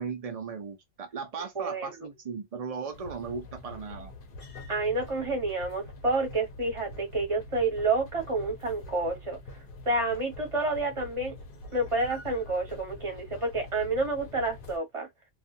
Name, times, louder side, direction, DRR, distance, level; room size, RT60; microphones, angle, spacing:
voice 1, 0.0-4.1, right 5 dB, 75° right, 0.3 m, -37 dB
voice 2, 1.5-2.0 4.7-9.4 9.9-11.3 11.7-15.1, right 2 dB, 25° right, 0.9 m, -29 dB
sound 1, 2.9-14.8, left 2 dB, 55° left, 0.7 m, -45 dB
2.4 x 2.3 x 2.5 m
omnidirectional pair, 1.4 m